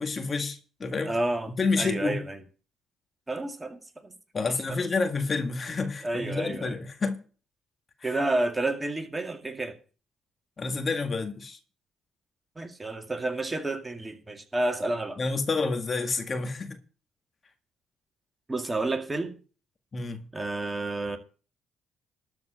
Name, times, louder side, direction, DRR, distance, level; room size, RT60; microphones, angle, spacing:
voice 1, 0.0-1.1 1.6-2.2 4.3-7.2 8.0-8.1 10.6-11.6 15.2-16.8 19.9-20.3, left 4 dB, 40° left, 2.0 m, -29 dB
voice 2, 1.0-2.4 3.3-4.1 4.4-4.8 6.0-6.8 8.0-9.8 12.6-15.2 18.5-19.4 20.3-21.2, right 2 dB, 20° right, 2.1 m, -30 dB
13.0 x 4.7 x 8.9 m
supercardioid pair, 60°, 0 cm